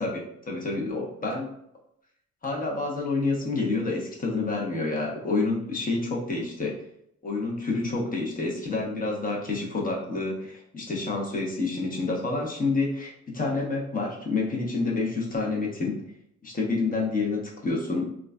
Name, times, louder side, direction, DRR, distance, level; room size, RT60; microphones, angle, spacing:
voice 1, 0.0-1.5 2.4-6.8 7.2-16.0 16.4-18.0, left 3 dB, 30° left, -2 dB, 0.9 m, -28 dB
3.0 x 2.4 x 2.3 m, 0.73 s
cardioid pair, 90°, 30 cm